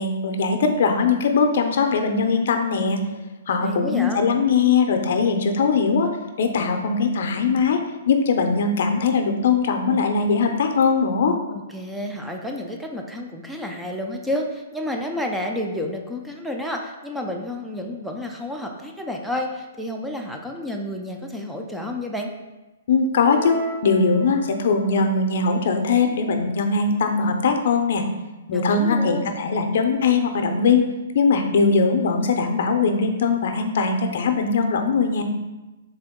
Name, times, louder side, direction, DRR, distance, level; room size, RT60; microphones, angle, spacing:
voice 1, 0.0-3.0 3.5-6.1 6.4-11.4 22.9-28.0 28.5-30.8 31.1-35.2, left 4 dB, 60° left, 5 dB, 0.6 m, -20 dB
voice 2, 3.6-4.3 11.5-22.3 28.5-29.4, left 1 dB, ahead, 1 dB, 0.4 m, -30 dB
sound 1, 23.1-24.8, right 3 dB, 35° right, 1.3 m, -35 dB
3.7 x 3.4 x 3.6 m, 1.1 s
hypercardioid pair, 145°, 0 cm